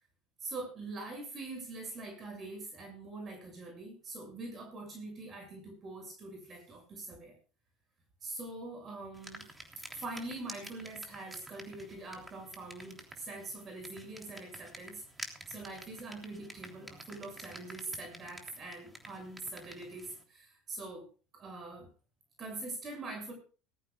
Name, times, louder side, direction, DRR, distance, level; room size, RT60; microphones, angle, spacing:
voice 1, 0.4-7.3 8.2-9.5 9.8-21.0 21.3-21.9 22.4-23.3, right 2 dB, 35° right, 2 dB, 7.1 m, -43 dB
sound 1, 9.1-20.2, right 1 dB, 10° right, 3.3 m, -50 dB
19.5 x 14.5 x 2.4 m, 0.38 s
figure-of-eight pair, 75°, 0 cm